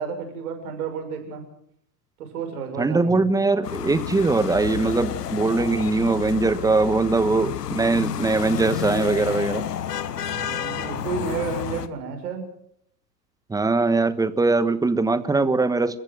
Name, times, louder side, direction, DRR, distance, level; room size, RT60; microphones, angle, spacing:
voice 1, 0.0-1.4 2.2-3.3 10.2-12.4, right 5 dB, 60° right, 5 dB, 6.7 m, -31 dB
voice 2, 2.8-9.7 13.5-16.0, right 3 dB, 5° right, 15 dB, 1.2 m, -21 dB
sound 1, 3.6-11.9, left 9 dB, 70° left, 1.3 m, -30 dB
29.5 x 15.0 x 6.4 m, 0.70 s
figure-of-eight pair, 85°, 49 cm